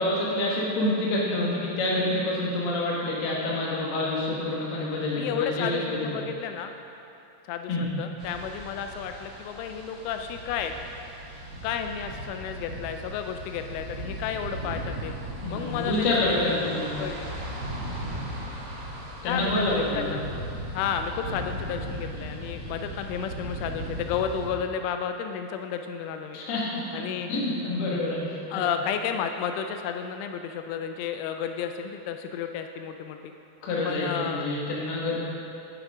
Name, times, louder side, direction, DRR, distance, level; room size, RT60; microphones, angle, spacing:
voice 1, 0.0-6.2 7.7-7.9 15.4-16.9 19.2-20.1 26.3-28.6 33.6-35.2, left 2 dB, 65° left, -5 dB, 3.4 m, -27 dB
voice 2, 5.2-6.7 7.5-10.7 11.6-15.1 15.5-16.1 16.5-16.6 17.0-17.3 19.2-20.2 20.7-26.4 26.9-27.3 28.5-33.3 33.9-34.5, left 7 dB, 90° left, 6 dB, 3.0 m, -32 dB
sound 1, 8.2-24.5, equal, 70° right, 1.0 m, -37 dB
11.5 x 9.8 x 3.7 m, 2.7 s
omnidirectional pair, 5.4 m